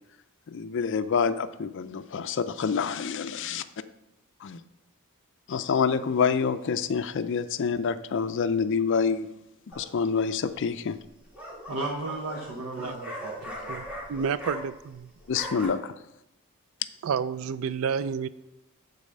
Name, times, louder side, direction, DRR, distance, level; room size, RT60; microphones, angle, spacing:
voice 1, 0.5-3.6 4.4-4.6 5.5-9.3 9.8-11.0 15.3-15.9, left 6 dB, 55° left, 11 dB, 0.4 m, -27 dB
sound 1, 9.7-10.2 11.0-14.9 15.2-15.7, equal, 5° right, 1.7 m, -39 dB
voice 2, 11.7-13.8, right 2 dB, 90° right, 0 dB, 1.0 m, -35 dB
voice 3, 13.7-15.0 17.0-18.3, right 6 dB, 65° right, 16 dB, 0.3 m, -30 dB
8.6 x 4.1 x 6.5 m, 0.86 s
head